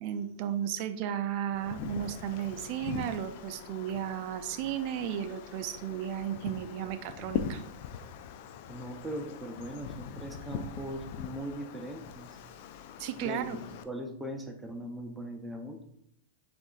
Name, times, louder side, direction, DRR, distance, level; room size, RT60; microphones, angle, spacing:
voice 1, 0.0-7.6 13.0-13.6, right 9 dB, 50° right, 10 dB, 0.4 m, -34 dB
Wind, 1.5-13.8, left 8 dB, 55° left, 0.3 m, -42 dB
voice 2, 8.7-12.4 13.1-15.8, equal, 5° right, 3 dB, 0.6 m, -40 dB
6.3 x 2.5 x 2.4 m, 0.76 s
hypercardioid pair, 110°, 0 cm